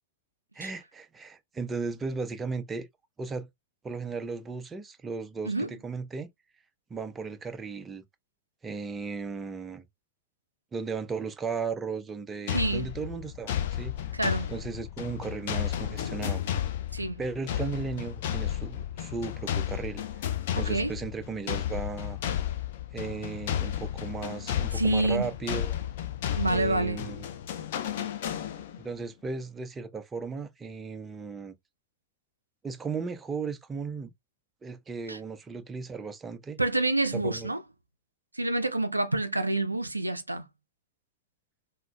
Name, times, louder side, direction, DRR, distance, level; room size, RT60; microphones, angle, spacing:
voice 1, 0.5-2.9 3.2-3.5 3.8-6.3 6.9-8.0 8.6-9.9 10.7-14.0 14.5-16.4 17.2-20.0 20.6-22.2 22.9-25.7 26.5-27.3 28.8-31.6 32.6-34.1 34.6-36.6 37.1-37.5, right 4 dB, 15° right, 0.4 m, -36 dB
sound 1, 12.5-28.9, left 10 dB, 55° left, 0.5 m, -33 dB
voice 2, 12.5-12.9 14.1-14.5 16.9-17.2 20.6-20.9 24.7-25.3 26.4-27.0 35.1-35.2 36.6-37.6 38.3-40.5, right 2 dB, 85° right, 0.3 m, -27 dB
3.4 x 2.1 x 2.2 m
figure-of-eight pair, 90°, 0 cm